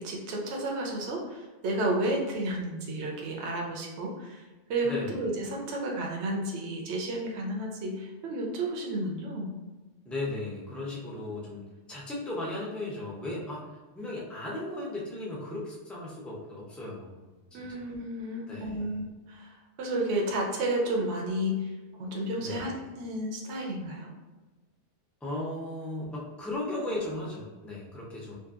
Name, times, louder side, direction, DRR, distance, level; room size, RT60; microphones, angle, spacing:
voice 1, 0.0-4.4 4.7-9.5 17.5-24.1, right 1 dB, 75° right, -1 dB, 0.9 m, -32 dB
voice 2, 4.8-5.2 10.0-11.6 11.9-13.7 14.0-17.3 17.7-17.8 18.5-19.0 22.4-22.8 25.2-28.4, left 2 dB, ahead, -4 dB, 0.3 m, -36 dB
2.7 x 2.5 x 2.4 m, 1.2 s
omnidirectional pair, 1.2 m